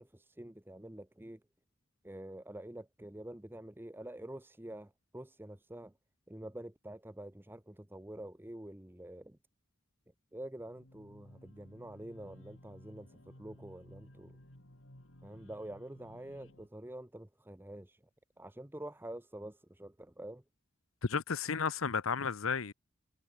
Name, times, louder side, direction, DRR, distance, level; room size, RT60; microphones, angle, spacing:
voice 1, 0.0-1.4 2.0-5.9 6.3-9.4 10.3-14.3 15.2-18.0 18.4-20.4, right 1 dB, 10° right, 0.9 m, -47 dB
sound 1, 10.7-16.7, left 1 dB, 65° left, 4.0 m, -57 dB
voice 2, 21.0-22.7, left 5 dB, 80° left, 0.9 m, -33 dB
head